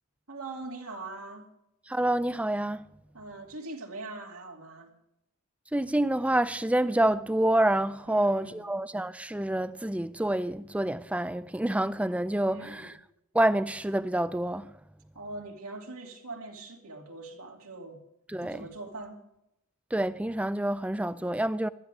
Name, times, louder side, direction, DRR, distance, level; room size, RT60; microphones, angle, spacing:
voice 1, 0.3-1.5 3.1-4.9 8.1-8.7 12.5-12.9 15.1-18.0 18.4-19.2, right 2 dB, 80° right, 2.6 m, -42 dB
voice 2, 1.9-2.8 5.7-12.9 13.3-14.7 18.3-18.6 19.9-21.7, right 1 dB, 5° right, 0.4 m, -27 dB
20.0 x 13.5 x 3.5 m
head